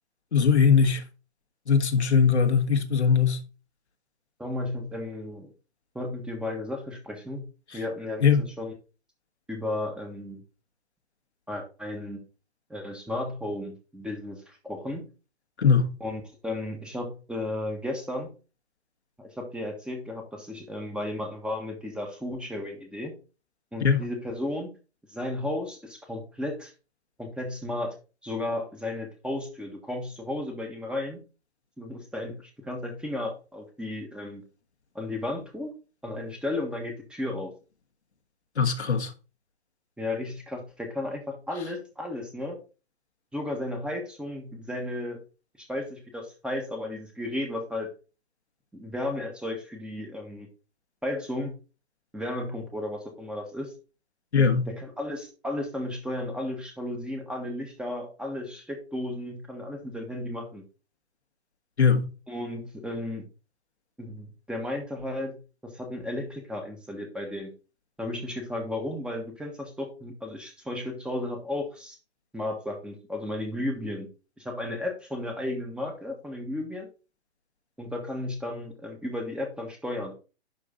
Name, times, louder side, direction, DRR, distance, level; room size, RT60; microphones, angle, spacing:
voice 1, 0.3-1.0 1.7-3.4 8.2-8.4 15.6-15.9 23.8-24.0 38.6-39.1 54.3-54.7 61.8-62.1, left 6 dB, 85° left, 1.6 m, -20 dB
voice 2, 4.4-5.5 5.9-7.4 7.7-8.7 9.5-10.4 11.5-12.2 12.7-15.1 16.0-18.3 19.2-23.1 23.7-24.7 25.1-26.7 27.2-27.9 28.2-31.2 31.8-34.4 34.9-35.7 36.0-37.5 40.0-42.6 43.3-45.2 45.6-47.9 48.7-50.5 51.0-51.6 52.1-53.7 54.4-60.6 62.3-63.3 64.0-67.5 68.0-72.0 72.3-74.1 74.4-76.9 77.8-80.2, left 1 dB, 5° right, 1.3 m, -34 dB
11.0 x 3.8 x 3.8 m
hypercardioid pair, 130°, 33 cm